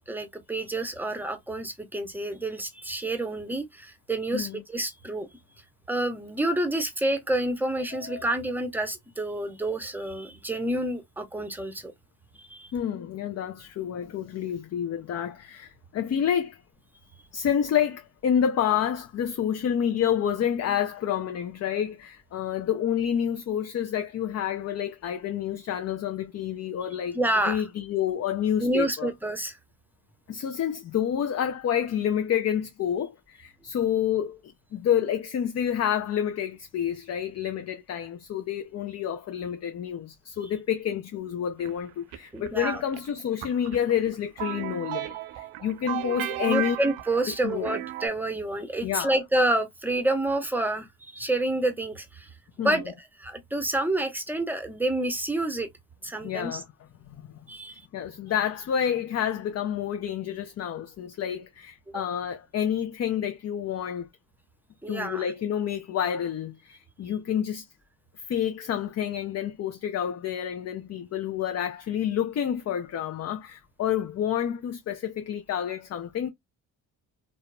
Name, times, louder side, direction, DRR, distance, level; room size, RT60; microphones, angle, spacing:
voice 1, 0.1-5.3 5.9-11.9 12.4-12.7 27.1-27.6 28.6-29.6 42.3-42.8 46.4-52.3 52.6-55.7 56.0-56.6 57.5-57.8 61.9-62.0 64.8-65.2, right 1 dB, 5° right, 0.7 m, -28 dB
voice 2, 4.3-4.6 7.9-8.4 12.7-16.6 17.3-29.1 30.3-34.4 34.7-46.8 47.3-47.8 48.8-49.2 52.6-52.9 56.2-56.7 57.1-57.2 57.9-64.1 64.9-67.7 68.3-76.3, left 9 dB, 35° left, 0.4 m, -29 dB
sound 1, 41.6-48.1, right 14 dB, 75° right, 0.6 m, -34 dB
2.8 x 2.0 x 2.2 m
hypercardioid pair, 50°, 50 cm